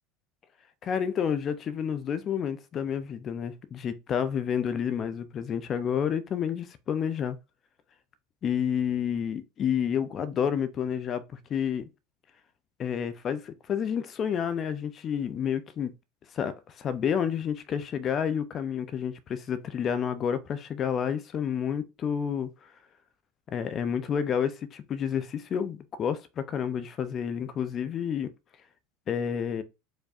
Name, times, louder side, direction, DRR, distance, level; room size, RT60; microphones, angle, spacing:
voice 1, 0.8-7.4 8.4-11.2 11.5-11.9 12.8-15.9 16.3-22.5 23.5-28.3 29.1-29.6, left 8 dB, 40° left, 0.6 m, -29 dB
4.8 x 2.2 x 4.2 m
hypercardioid pair, 75°, 0 cm